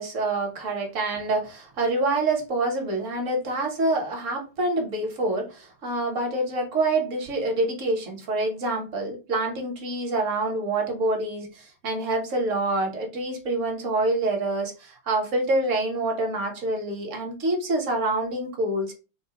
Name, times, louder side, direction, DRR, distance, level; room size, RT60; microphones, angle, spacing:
voice 1, 0.0-18.9, right 2 dB, 50° right, 1.0 m, -26 dB
4.1 x 2.2 x 2.8 m
omnidirectional pair, 2.1 m